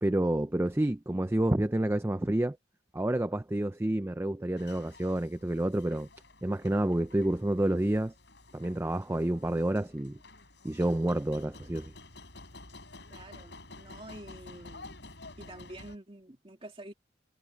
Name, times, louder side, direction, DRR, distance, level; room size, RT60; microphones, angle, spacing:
voice 1, 0.0-2.6 2.9-6.1 6.4-8.1 8.5-10.2 10.6-11.9, right 1 dB, 15° right, 0.4 m, -29 dB
sound 1, 4.6-16.0, left 2 dB, 65° left, 7.6 m, -51 dB
voice 2, 13.1-14.9 15.4-16.9, right 1 dB, 30° right, 2.4 m, -48 dB
head